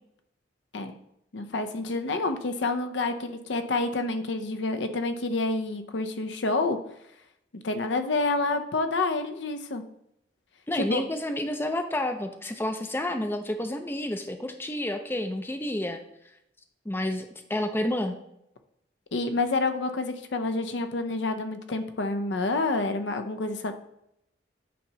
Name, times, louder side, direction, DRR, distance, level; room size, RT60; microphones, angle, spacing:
voice 1, 1.3-6.8 7.6-9.8 10.7-11.0 19.1-23.7, left 3 dB, 70° left, 7 dB, 0.6 m, -28 dB
voice 2, 10.7-16.0 16.9-18.2, left 1 dB, 10° left, 6 dB, 0.4 m, -30 dB
8.3 x 2.9 x 5.5 m, 0.78 s
head